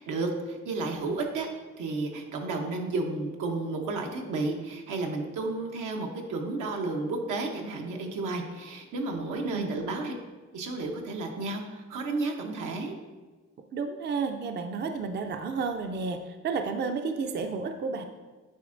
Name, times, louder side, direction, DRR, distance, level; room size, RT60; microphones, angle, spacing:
voice 1, 0.0-1.5 1.8-10.1 10.5-12.9, right 3 dB, 85° right, 2 dB, 0.9 m, -32 dB
voice 2, 13.7-18.0, right 4 dB, 35° right, 6 dB, 0.5 m, -31 dB
9.2 x 4.2 x 2.5 m, 1.3 s
cardioid pair, 90°, 30 cm